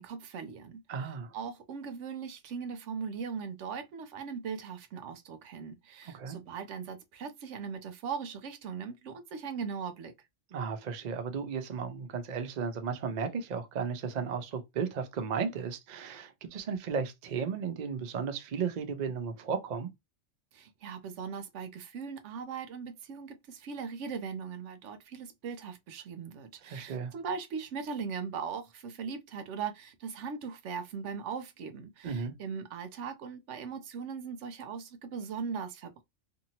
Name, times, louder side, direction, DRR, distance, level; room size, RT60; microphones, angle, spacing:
voice 1, 0.0-0.8 1.1-10.1 20.5-36.0, right 6 dB, 75° right, 0.9 m, -39 dB
voice 2, 0.9-1.3 6.1-6.4 10.5-19.9 26.6-27.1 32.0-32.3, right 6 dB, 50° right, 0.5 m, -34 dB
2.7 x 2.6 x 2.7 m
omnidirectional pair, 1.3 m